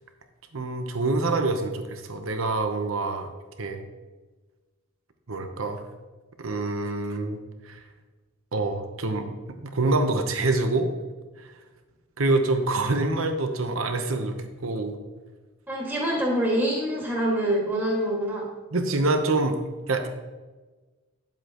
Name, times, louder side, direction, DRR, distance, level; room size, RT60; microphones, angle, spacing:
voice 1, 0.5-3.3 3.6-3.8 5.3-5.8 6.4-7.4 7.6-7.8 8.5-9.3 9.6-10.9 11.4-11.5 12.2-15.0 18.7-20.1, right 2 dB, 70° right, 6 dB, 0.9 m, -26 dB
voice 2, 15.7-18.5, right 1 dB, 10° right, -4 dB, 2.0 m, -25 dB
10.0 x 7.5 x 3.0 m, 1.3 s
head